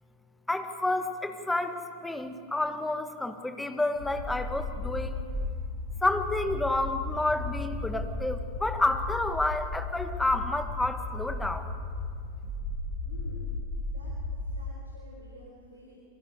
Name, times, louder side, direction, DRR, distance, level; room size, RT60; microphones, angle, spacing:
voice 1, 0.5-5.2 6.0-11.7, left 2 dB, 5° left, 8 dB, 1.7 m, -30 dB
sound 1, 4.0-14.6, left 2 dB, 50° left, 7.4 m, -35 dB
voice 2, 13.0-13.6 13.9-14.2 14.5-16.0, left 1 dB, 75° right, -3 dB, 4.3 m, -50 dB
29.0 x 23.5 x 5.0 m, 2.2 s
figure-of-eight pair, 90°, 0 cm